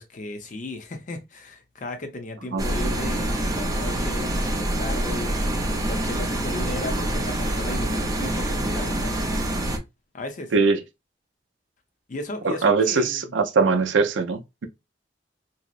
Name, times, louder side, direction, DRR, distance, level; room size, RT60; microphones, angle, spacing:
voice 1, 0.0-5.4 5.9-9.2 10.1-10.5 12.1-13.2, left 2 dB, 45° left, 0.6 m, -35 dB
sound 1, 2.6-9.8, right 1 dB, 20° right, 0.4 m, -26 dB
voice 2, 12.4-14.7, right 4 dB, 90° right, 0.4 m, -21 dB
2.7 x 2.0 x 2.3 m
head